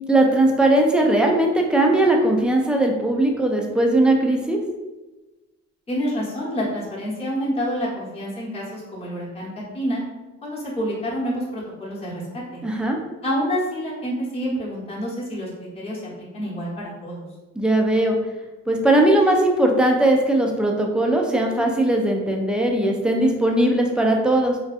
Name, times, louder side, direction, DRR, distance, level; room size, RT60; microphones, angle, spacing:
voice 1, 0.1-4.6 12.6-13.0 17.6-18.2 18.7-24.6, right 1 dB, 5° right, 1 dB, 0.3 m, -19 dB
voice 2, 5.9-10.0 10.4-12.6 13.2-17.2, equal, 20° left, -6 dB, 0.9 m, -28 dB
2.6 x 2.2 x 2.4 m, 1.1 s
cardioid pair, 90°, 30 cm